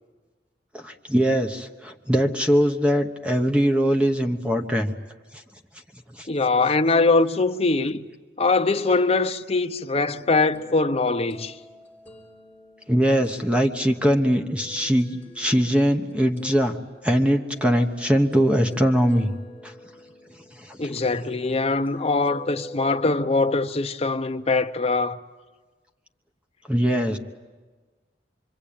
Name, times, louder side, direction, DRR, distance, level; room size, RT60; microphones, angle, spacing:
voice 1, 0.7-4.9 6.1-6.3 12.9-16.8 17.0-19.3 19.6-19.7 20.6-20.8 26.7-27.2, equal, 5° right, 1.1 m, -21 dB
voice 2, 6.3-8.0 8.4-11.6 20.8-25.2, left 3 dB, 35° left, 0.8 m, -22 dB
sound 1, 9.7-23.6, left 1 dB, 10° left, 3.9 m, -46 dB
26.0 x 23.5 x 8.8 m
head